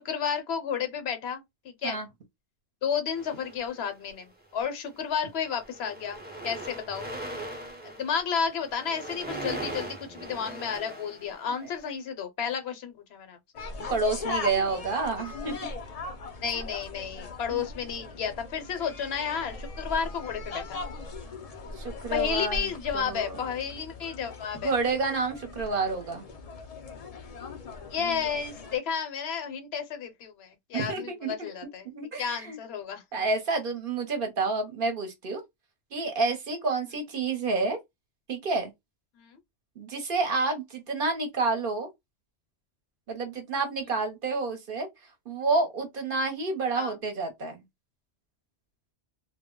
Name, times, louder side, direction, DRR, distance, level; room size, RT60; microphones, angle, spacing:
voice 1, 0.0-2.0 2.8-7.1 7.8-13.4 16.4-20.8 22.1-24.8 27.9-31.9 32.2-33.2 39.1-39.4 46.7-47.0, left 7 dB, 70° left, 0.9 m, -32 dB
sound 1, 3.1-4.1 4.9-5.1 5.4-11.8, right 1 dB, 15° right, 0.5 m, -40 dB
sound 2, 13.5-28.8, left 3 dB, 45° left, 0.5 m, -39 dB
voice 2, 13.9-15.6 17.5-17.6 21.8-22.7 22.9-23.3 24.6-26.2 30.7-31.5 31.8-32.6 33.1-35.4 35.9-37.8 38.3-38.7 39.8-41.9 43.1-44.9 45.3-47.6, right 3 dB, 55° right, 0.8 m, -29 dB
2.2 x 2.0 x 3.6 m
omnidirectional pair, 1.1 m